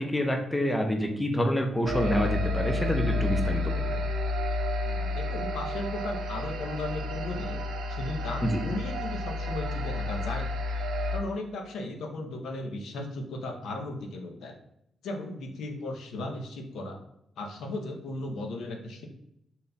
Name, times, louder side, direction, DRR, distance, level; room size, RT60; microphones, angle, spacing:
voice 1, 0.0-4.0 8.4-8.6, equal, 10° left, 3 dB, 0.4 m, -27 dB
sound 1, 1.8-11.2, left 2 dB, 85° right, 0.6 m, -30 dB
voice 2, 4.8-7.6 7.9-10.5 11.1-14.5 15.0-17.0 17.4-19.1, left 2 dB, 90° left, 3 dB, 0.7 m, -36 dB
4.0 x 2.3 x 3.9 m, 0.79 s
wide cardioid pair, 175°, 0 cm